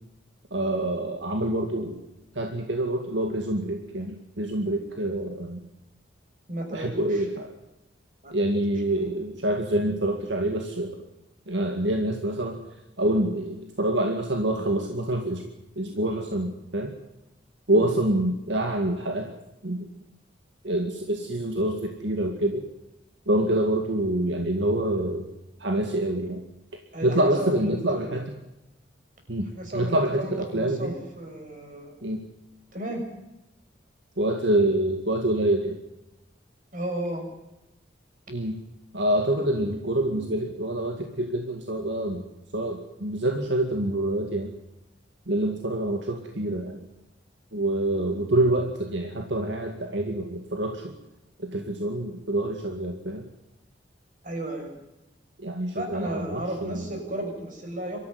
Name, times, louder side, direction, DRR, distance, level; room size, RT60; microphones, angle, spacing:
voice 1, 0.5-2.0 2.4-5.6 6.7-7.6 8.3-11.0 11.5-12.6 13.0-15.4 15.8-16.9 17.7-19.3 19.6-19.9 20.6-22.6 23.3-25.3 25.6-26.4 27.0-28.2 29.3-29.5 29.7-30.9 32.0-32.2 34.2-35.8 38.3-38.6 38.9-42.3 42.5-44.5 45.3-46.8 47.5-50.9 51.4-53.3 55.4-56.9, right 1 dB, 70° right, 3 dB, 2.2 m, -26 dB
voice 2, 6.5-7.3 8.2-8.3 9.0-9.1 17.7-17.9 26.9-28.2 29.5-32.0 32.7-33.0 36.7-37.3 54.2-54.7 55.7-58.0, right 1 dB, 45° right, 3 dB, 6.5 m, -34 dB
24.0 x 14.0 x 9.6 m, 0.94 s
head